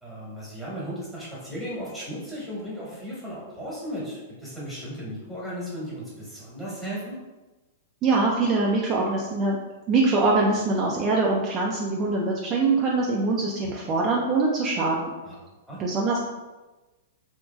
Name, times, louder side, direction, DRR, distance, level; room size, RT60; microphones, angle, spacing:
voice 1, 0.0-7.2 15.2-15.3 15.7-15.8, equal, ahead, -8 dB, 1.2 m, -35 dB
voice 2, 8.0-9.6 9.9-15.1 15.8-16.2, right 3 dB, 30° right, -3 dB, 0.4 m, -23 dB
3.1 x 2.4 x 2.2 m, 1.1 s
hypercardioid pair, 125°, 0 cm